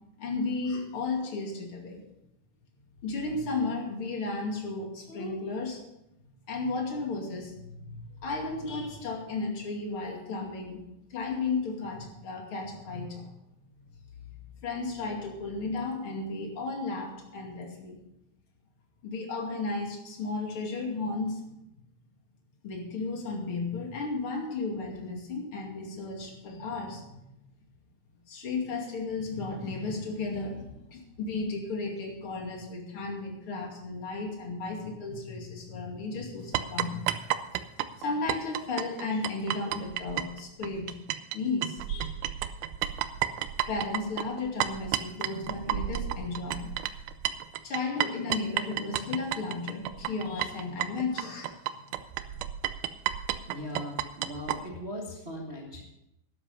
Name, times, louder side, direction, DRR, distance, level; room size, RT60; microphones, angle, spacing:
voice 1, 0.2-2.0 3.0-5.8 6.5-10.8 11.1-13.4 14.6-18.0 19.0-21.5 22.6-27.2 28.3-37.1 38.0-41.0 41.3-42.2 43.7-46.8 47.6-51.6, left 3 dB, 40° left, 1 dB, 2.9 m, -34 dB
sound 1, 36.5-41.4 41.6-54.6, right 12 dB, 80° right, 1.9 m, -31 dB
voice 2, 53.5-55.8, left 1 dB, 45° right, -2 dB, 0.7 m, -39 dB
12.0 x 11.0 x 5.5 m, 0.87 s
omnidirectional pair, 4.3 m